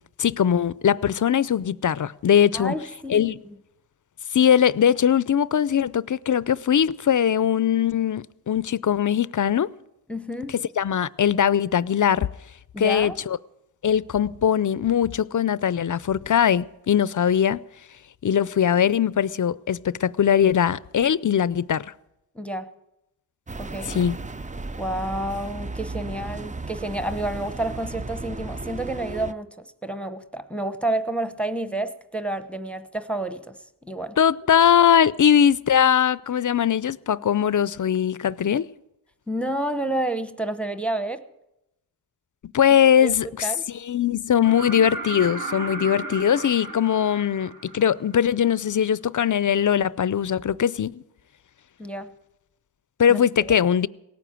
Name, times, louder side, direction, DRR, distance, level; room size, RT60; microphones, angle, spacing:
voice 1, 0.2-2.7 3.1-3.4 4.3-9.7 10.8-12.3 12.8-13.4 13.8-17.6 18.2-21.9 23.9-24.2 34.2-38.7 42.4-51.0 53.0-53.9, left 9 dB, 50° left, 0.5 m, -21 dB
voice 2, 2.5-3.5 10.1-10.5 12.7-13.2 22.3-22.7 23.6-23.9 24.8-34.2 39.3-41.2 43.0-43.1 43.4-43.6 51.8-52.1 53.1-53.5, right 1 dB, 5° left, 0.9 m, -30 dB
sound 1, 23.5-29.3, right 3 dB, 20° right, 0.5 m, -35 dB
sound 2, 44.4-48.2 50.1-50.2, right 3 dB, 55° right, 1.6 m, -35 dB
17.5 x 9.3 x 7.6 m
cardioid pair, 45°, 41 cm